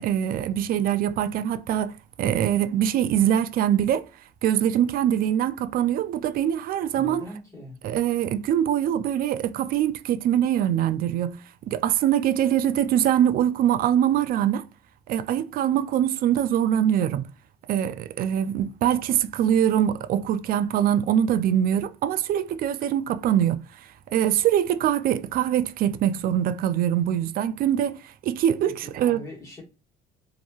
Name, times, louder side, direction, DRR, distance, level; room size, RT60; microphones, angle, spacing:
voice 1, 0.0-4.1 4.4-7.2 7.8-11.4 11.7-14.6 15.1-17.3 17.7-29.2, right 10 dB, 60° right, 0.4 m, -23 dB
voice 2, 6.9-7.8 28.6-29.6, left 1 dB, 20° left, 1.4 m, -41 dB
2.9 x 2.6 x 2.3 m
cardioid pair, 110°, 17 cm